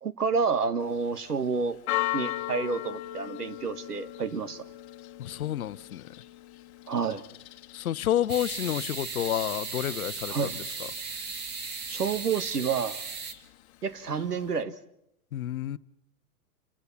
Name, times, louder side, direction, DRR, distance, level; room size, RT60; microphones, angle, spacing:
voice 1, 0.0-1.8 2.1-4.6 6.9-7.2 10.3-10.5 11.9-13.0 13.8-14.7, right 5 dB, 85° right, 14 dB, 1.5 m, -29 dB
Church bell, 0.8-14.6, left 16 dB, 45° left, 1.3 m, -40 dB
voice 2, 5.2-6.1 7.7-10.5 15.3-15.8, left 12 dB, 70° left, 17 dB, 0.8 m, -29 dB
sound 1, 8.3-13.3, right 5 dB, 25° right, 1.8 m, -36 dB
28.0 x 16.0 x 7.1 m, 0.77 s
hypercardioid pair, 120°, 45 cm